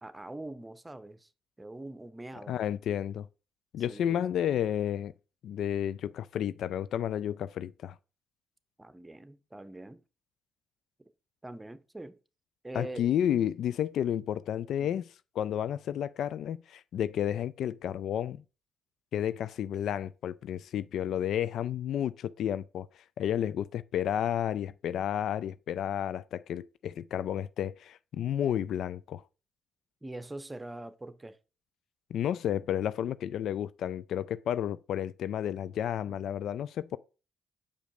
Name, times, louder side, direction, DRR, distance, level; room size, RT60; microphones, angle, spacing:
voice 1, 0.0-1.3 1.6-2.6 3.9-4.2 8.8-10.0 11.4-12.2 12.6-13.1 14.8-14.9 30.0-31.4 36.1-36.2, right 2 dB, 15° right, 0.9 m, -43 dB
voice 2, 2.5-3.3 3.7-5.1 5.4-7.9 12.7-18.4 19.1-22.9 23.2-29.2 32.1-37.0, left 10 dB, 65° left, 0.3 m, -31 dB
7.1 x 5.0 x 5.0 m
hypercardioid pair, 50°, 0 cm